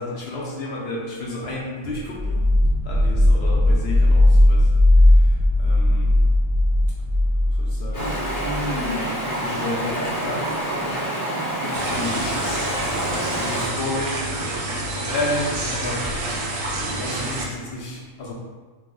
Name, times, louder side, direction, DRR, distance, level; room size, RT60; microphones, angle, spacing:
voice 1, 0.0-2.4 2.9-4.6 5.6-6.0 7.8-8.1 9.4-10.6 11.9-12.7 13.3-16.1 16.9-18.3, left 2 dB, 65° left, -4 dB, 0.7 m, -31 dB
sound 1, 2.2-8.9, left 1 dB, 60° right, 0.8 m, -17 dB
Stream, 7.9-13.7, right 1 dB, 25° left, 0.5 m, -27 dB
sound 2, 11.7-17.5, right 2 dB, 85° right, 1.0 m, -28 dB
2.9 x 2.0 x 3.7 m, 1.4 s
omnidirectional pair, 1.3 m